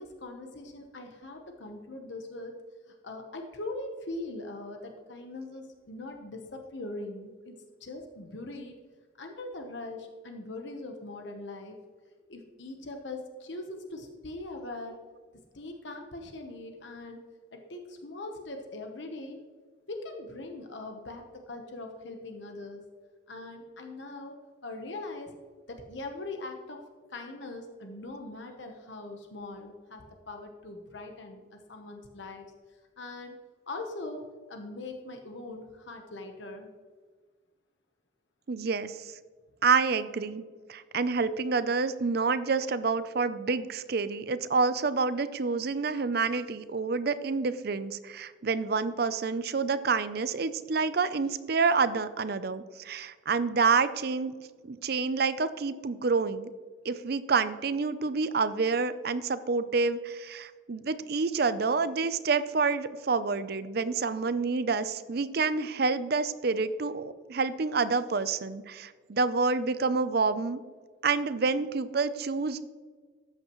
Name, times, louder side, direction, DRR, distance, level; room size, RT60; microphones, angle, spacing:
voice 1, 0.0-2.5 2.9-8.8 9.2-11.8 12.3-15.0 15.5-17.2 17.5-19.4 19.9-22.8 23.3-25.4 25.7-26.8 27.1-33.4 33.7-36.7, left 2 dB, 70° left, 4 dB, 1.0 m, -41 dB
voice 2, 38.5-39.2 39.6-40.4 40.7-54.3 54.6-56.5 56.8-70.6 71.0-72.6, right 4 dB, 50° right, 13 dB, 0.5 m, -28 dB
13.0 x 8.9 x 3.1 m, 1.6 s
head